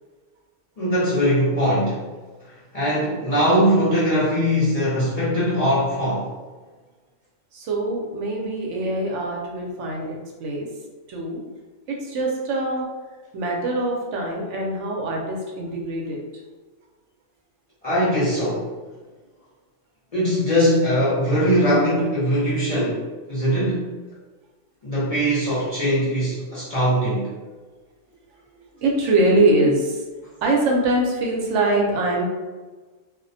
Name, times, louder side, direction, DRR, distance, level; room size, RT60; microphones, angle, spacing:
voice 1, 0.8-2.0 2.4-6.3 17.8-18.7 20.1-23.8 24.8-27.3, equal, 40° left, -9 dB, 0.6 m, -21 dB
voice 2, 7.5-10.7 11.1-11.4 11.9-12.9 13.3-16.4 28.5-30.0 30.4-32.3, right 2 dB, 75° right, -1 dB, 0.9 m, -23 dB
2.3 x 2.1 x 2.5 m, 1.3 s
omnidirectional pair, 1.3 m